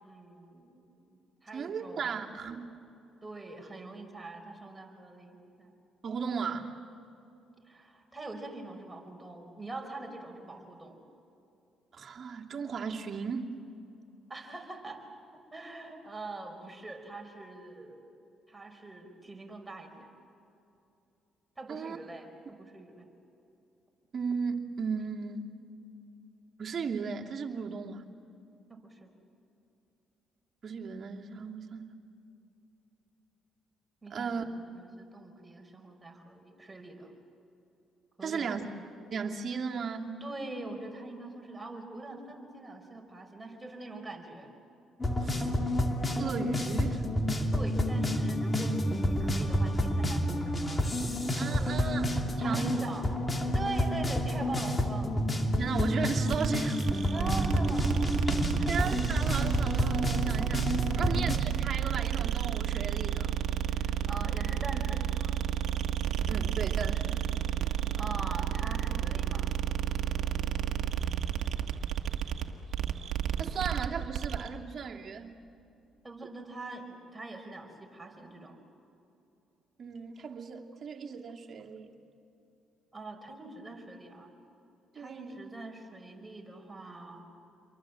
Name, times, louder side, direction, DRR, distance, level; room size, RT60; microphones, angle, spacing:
voice 1, 0.0-2.2 3.2-5.7 7.7-11.1 14.3-15.1 15.5-18.0 18.5-20.1 21.6-23.1 28.7-29.1 34.0-34.5 34.7-37.1 38.2-38.6 40.2-44.5 47.5-52.1 52.4-55.2 57.1-59.1 61.0-61.3 63.7-65.4 68.0-69.6 76.0-78.6 82.9-84.3 84.9-87.3, right 2 dB, 15° right, 3 dB, 5.3 m, -43 dB
voice 2, 1.5-2.6 6.0-6.7 11.9-13.5 21.7-22.0 24.1-25.5 26.6-28.0 30.6-31.9 34.1-34.4 38.2-38.7 39.1-40.2 45.2-45.5 46.2-47.0 51.3-52.0 52.4-52.8 55.6-56.8 58.7-60.7 61.0-63.3 66.3-67.3 73.4-75.4 79.8-82.0 84.9-85.4, right 6 dB, 50° right, 0 dB, 2.7 m, -36 dB
sound 1, 45.0-61.4, equal, 25° left, 2.7 m, -29 dB
sound 2, 56.3-74.5, right 10 dB, 65° right, 1.6 m, -31 dB
29.5 x 23.5 x 7.7 m, 2.8 s
supercardioid pair, 65°, 0 cm